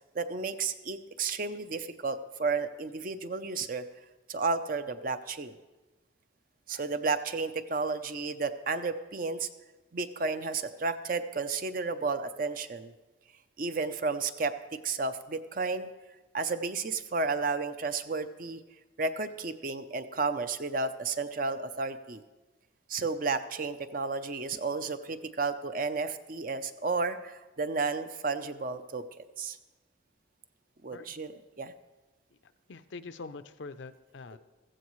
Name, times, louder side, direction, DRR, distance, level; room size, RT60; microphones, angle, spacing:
voice 1, 0.1-3.9 4.3-5.5 6.7-9.5 9.9-12.9 13.6-14.5 14.8-15.9 16.3-18.6 19.0-22.2 22.9-29.6 30.8-31.7, right 4 dB, 45° right, 10 dB, 0.6 m, -32 dB
voice 2, 32.7-34.4, left 4 dB, 70° left, 11 dB, 0.6 m, -44 dB
15.0 x 15.0 x 3.2 m, 1.1 s
head